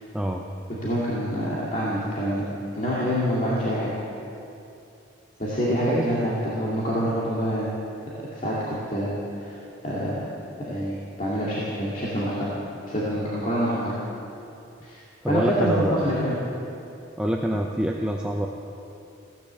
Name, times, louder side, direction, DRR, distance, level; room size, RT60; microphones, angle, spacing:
voice 1, 0.1-0.4 5.7-6.1 15.2-16.1 17.2-18.5, equal, 5° right, 0 dB, 0.6 m, -26 dB
voice 2, 0.7-3.9 5.4-7.7 8.4-9.2 9.4-9.6 9.8-10.2 10.6-12.5 12.9-13.9 14.8-15.0 15.3-16.3, equal, 35° left, -7 dB, 2.3 m, -26 dB
16.5 x 10.0 x 7.5 m, 2.7 s
head